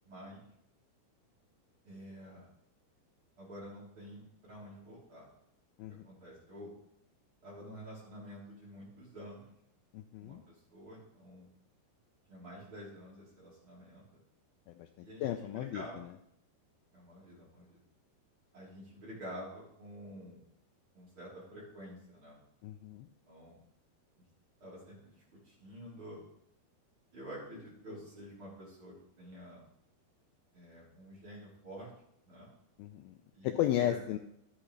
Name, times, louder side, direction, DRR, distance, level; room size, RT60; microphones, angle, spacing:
voice 1, 0.0-0.4 1.8-2.5 3.4-5.3 5.9-6.7 7.4-9.5 10.2-11.5 12.3-14.2 15.0-16.0 16.9-17.8 18.5-20.5 20.9-22.4 23.3-23.6 24.6-26.2 27.1-29.6 30.5-31.9 32.2-32.5 33.3-34.0, equal, 30° right, -6 dB, 3.9 m, -49 dB
voice 2, 9.9-10.4 14.8-15.8 22.6-23.1 32.8-33.2 33.4-34.2, left 12 dB, 85° left, 6 dB, 2.1 m, -34 dB
13.0 x 8.6 x 3.2 m, 0.75 s
omnidirectional pair, 4.8 m